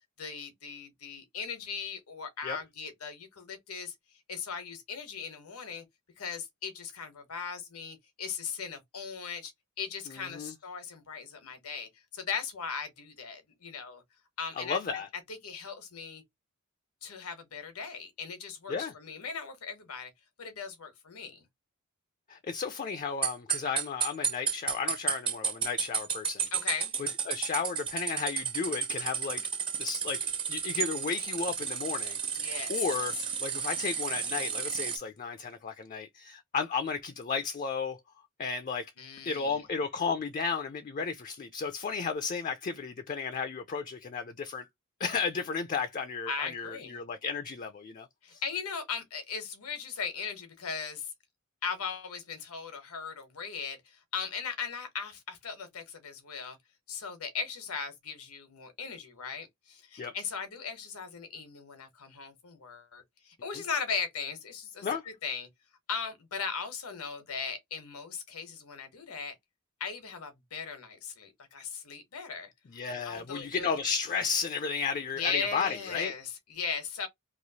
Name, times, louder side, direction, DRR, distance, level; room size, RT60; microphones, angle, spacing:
voice 1, 0.2-3.9 4.3-5.8 6.2-9.5 9.8-14.0 14.4-14.8 15.3-16.2 17.0-20.1 20.4-21.4 26.5-26.9 32.4-32.8 39.0-39.6 46.3-47.0 48.2-51.1 51.6-56.6 56.9-64.9 65.2-65.5 65.9-69.4 69.8-72.5 73.0-73.8 75.1-77.1, left 6 dB, 85° left, 1.0 m, -38 dB
voice 2, 10.1-10.5 14.6-15.1 18.7-18.9 22.3-26.5 27.0-29.4 29.8-32.2 32.7-38.0 38.4-38.9 39.2-44.7 45.0-48.4 60.0-60.1 63.5-63.6 64.8-65.0 72.7-76.1, left 5 dB, 35° left, 0.4 m, -33 dB
sound 1, 23.2-35.0, right 7 dB, 25° right, 0.5 m, -32 dB
3.0 x 2.3 x 2.7 m
head